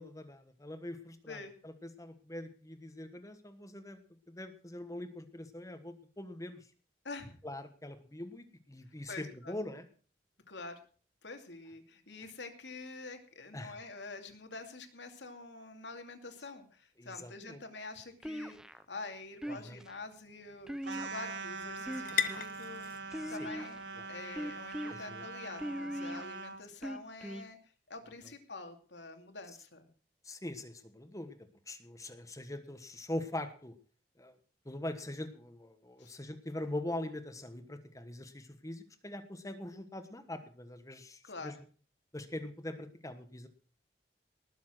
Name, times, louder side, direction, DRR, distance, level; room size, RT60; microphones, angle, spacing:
voice 1, 0.0-4.0 4.3-6.7 7.4-9.9 13.5-13.8 17.0-17.6 19.5-19.8 23.2-23.5 24.9-25.2 30.2-31.4 31.7-33.7 34.2-34.4 34.6-41.5 42.1-43.5, left 1 dB, 20° left, 9 dB, 1.3 m, -43 dB
voice 2, 7.0-7.4 9.1-9.6 10.5-10.8 11.2-22.8 23.3-23.8 24.1-27.6 27.9-29.9 36.0-36.1 41.2-41.6, left 3 dB, 85° left, 6 dB, 2.6 m, -46 dB
sound 1, 18.2-18.8 19.4-20.0 20.7-21.4 21.8-22.5 23.1-23.8 24.4-24.9 25.6-26.2 26.8-27.5, equal, 5° right, 0.6 m, -40 dB
sound 2, 18.6-26.4, left 8 dB, 55° left, 1.0 m, -43 dB
sound 3, 20.8-26.6, right 4 dB, 85° right, 1.7 m, -43 dB
19.5 x 7.2 x 6.1 m, 0.40 s
head